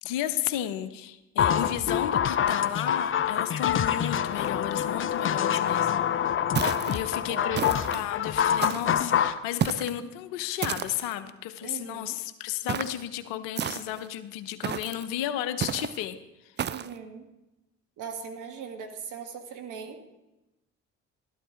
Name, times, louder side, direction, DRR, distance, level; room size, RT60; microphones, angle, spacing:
voice 1, 0.0-6.0 6.9-16.2, left 12 dB, 75° left, 12 dB, 0.8 m, -33 dB
sound 1, 1.4-9.4, left 9 dB, 40° left, 0.7 m, -26 dB
sound 2, 6.6-7.0 7.5-8.0 8.6-9.0 9.6-10.0 10.6-11.1 12.7-13.0 13.6-14.1 14.6-15.0 15.6-16.0 16.6-16.9, right 8 dB, 30° right, 0.5 m, -32 dB
voice 2, 7.3-7.8 11.6-12.2 16.7-17.3 18.0-20.0, right 6 dB, 65° right, 4 dB, 1.7 m, -40 dB
12.5 x 12.0 x 3.8 m, 0.97 s
hypercardioid pair, 50°, 33 cm